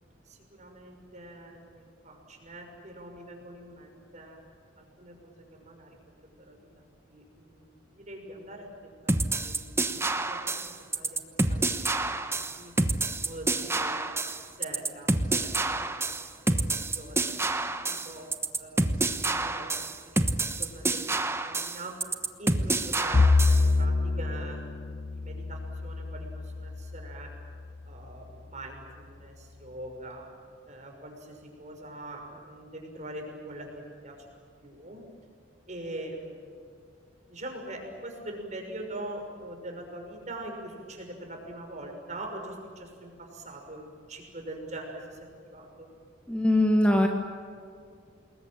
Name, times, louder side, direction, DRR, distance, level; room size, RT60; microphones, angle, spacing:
voice 1, 0.3-4.4 4.8-6.0 6.4-6.6 7.1-9.6 9.9-10.6 11.0-11.2 11.5-12.7 13.1-14.1 14.6-16.0 16.5-17.3 17.9-18.3 18.6-19.7 20.0-21.1 21.4-22.0 22.4-26.3 26.6-27.3 27.9-30.3 30.7-34.2 34.6-35.0 35.7-36.6 37.3-45.2 45.5-45.9, right 1 dB, 40° right, 2 dB, 6.1 m, -43 dB
sound 1, 9.1-23.7, right 2 dB, 15° right, 1.1 m, -28 dB
Bowed string instrument, 23.1-27.5, left 3 dB, 45° left, 0.7 m, -26 dB
voice 2, 46.3-47.1, left 1 dB, 5° left, 3 dB, 1.6 m, -21 dB
28.0 x 21.0 x 9.0 m, 2.3 s
head